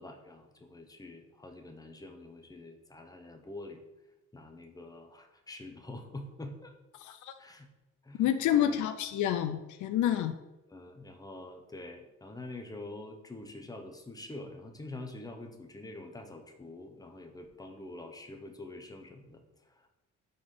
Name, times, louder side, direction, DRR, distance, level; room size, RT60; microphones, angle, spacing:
voice 1, 0.0-3.8 4.3-6.8 7.4-7.7 8.0-8.8 10.7-19.9, left 2 dB, 10° left, 4 dB, 0.9 m, -46 dB
voice 2, 7.0-7.3 8.2-10.3, left 11 dB, 75° left, 9 dB, 0.5 m, -28 dB
5.1 x 3.9 x 5.5 m, 1.0 s
cardioid pair, 90°, 30 cm